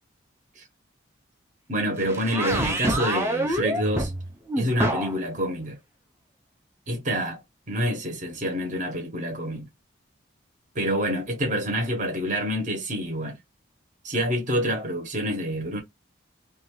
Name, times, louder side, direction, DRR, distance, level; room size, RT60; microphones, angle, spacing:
voice 1, 1.7-4.1 4.6-5.8 6.9-7.4 7.7-9.7 10.7-13.4 14.0-15.8, equal, 40° right, 0.8 m, -27 dB
sound 1, 2.0-5.2, right 1 dB, 15° right, 0.5 m, -26 dB
2.5 x 2.2 x 2.9 m
head